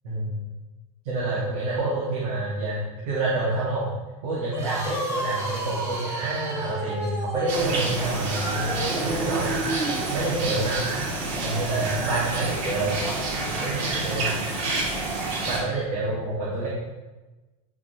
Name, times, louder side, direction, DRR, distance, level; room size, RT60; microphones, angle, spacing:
voice 1, 0.0-0.4 1.0-3.9 4.2-9.5 10.1-10.8 11.4-13.0 13.6-14.3 14.8-14.9 15.5-16.7, right 2 dB, 80° right, -7 dB, 3.0 m, -28 dB
sound 1, 4.4-10.1, right 2 dB, 15° right, 1.9 m, -32 dB
sound 2, 7.5-15.6, right 2 dB, 50° right, 2.7 m, -28 dB
11.5 x 6.1 x 3.6 m, 1.1 s
supercardioid pair, 135°, 19 cm